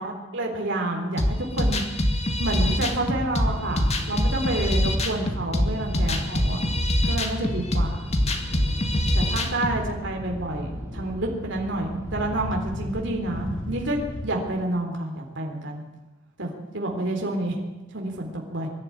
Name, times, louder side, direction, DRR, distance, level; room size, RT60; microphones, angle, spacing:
voice 1, 0.0-1.8 2.4-6.6 7.0-8.1 9.1-15.8 16.4-17.6 17.9-18.7, right 1 dB, 60° right, 1 dB, 3.7 m, -29 dB
sound 1, 1.2-9.8, left 1 dB, 35° left, 2.1 m, -24 dB
sound 2, 2.5-14.3, left 1 dB, 70° left, 5.3 m, -37 dB
sound 3, 3.4-12.3, equal, 10° right, 3.3 m, -39 dB
23.0 x 12.0 x 9.7 m, 1.1 s
head